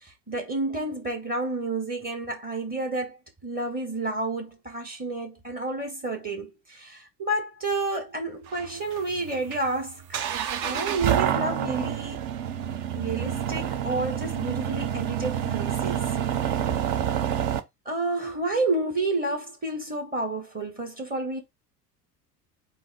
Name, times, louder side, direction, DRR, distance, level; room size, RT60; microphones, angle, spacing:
voice 1, 0.0-3.2 3.4-10.3 10.6-12.2 12.9-16.1 17.8-21.4, right 2 dB, 20° right, 1.3 m, -30 dB
sound 1, 8.5-17.6, right 9 dB, 45° right, 0.7 m, -28 dB
3.8 x 2.7 x 4.8 m
figure-of-eight pair, 70°, 49 cm